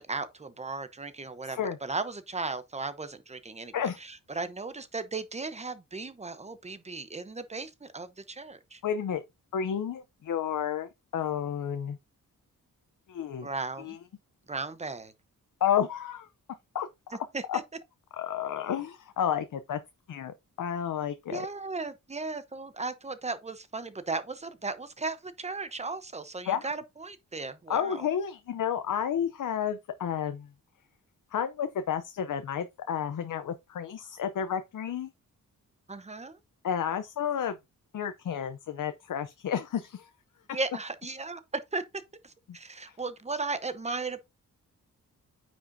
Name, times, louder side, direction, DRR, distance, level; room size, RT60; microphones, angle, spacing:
voice 1, 0.0-8.8 13.4-14.0 14.5-15.1 17.3-17.6 21.3-28.1 35.9-36.4 40.5-41.8 42.2-44.2, right 3 dB, 20° right, 0.9 m, -36 dB
voice 2, 8.8-9.2 9.5-12.0 13.1-13.5 13.8-14.0 15.6-16.3 16.7-16.9 17.5-17.6 18.2-19.8 20.1-21.5 26.5-26.7 27.7-30.5 31.3-35.1 36.6-37.6 37.9-40.1 42.8-43.0, left 8 dB, 65° left, 0.7 m, -31 dB
9.2 x 6.3 x 2.7 m
wide cardioid pair, 145°, 34 cm